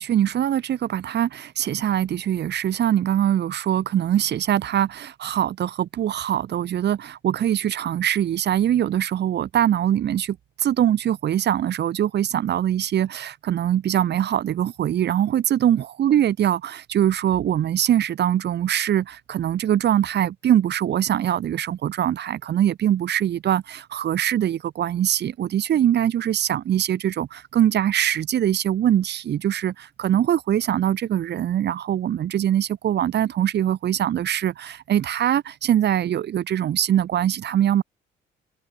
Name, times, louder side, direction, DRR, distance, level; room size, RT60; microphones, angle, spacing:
voice 1, 0.0-37.8, right 10 dB, 60° right, 0.9 m, -22 dB
cardioid pair, 90°, 20 cm